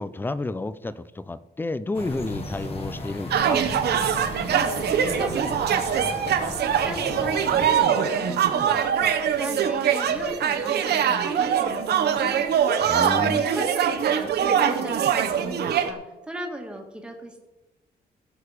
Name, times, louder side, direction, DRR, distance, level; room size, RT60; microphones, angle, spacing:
voice 1, 0.0-3.6 12.9-13.5, left 2 dB, 10° left, 16 dB, 0.4 m, -30 dB
sound 1, 1.9-7.8, left 1 dB, 35° left, 1.6 m, -35 dB
sound 2, 3.3-15.9, right 8 dB, 75° right, 1.1 m, -23 dB
voice 2, 4.4-6.6 6.8-12.6 13.4-17.5, right 1 dB, 5° right, 2 dB, 1.6 m, -38 dB
16.5 x 6.8 x 4.9 m, 1.1 s
wide cardioid pair, 175°, 17 cm